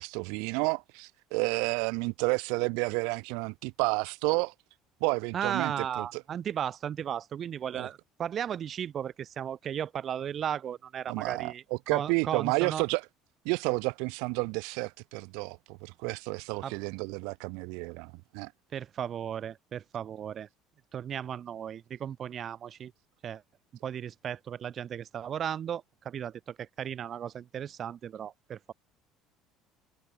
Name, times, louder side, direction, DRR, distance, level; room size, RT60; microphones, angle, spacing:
voice 1, 0.0-4.5 5.0-6.2 7.7-7.9 11.1-13.0 13.4-18.5, right 33 dB, 80° right, 4.8 m, -31 dB
voice 2, 5.3-11.6 11.9-12.8 16.6-16.7 18.7-20.5 20.9-22.9 23.2-23.4 23.8-28.7, right 9 dB, 35° right, 6.2 m, -35 dB
cardioid pair, 135°, 0 cm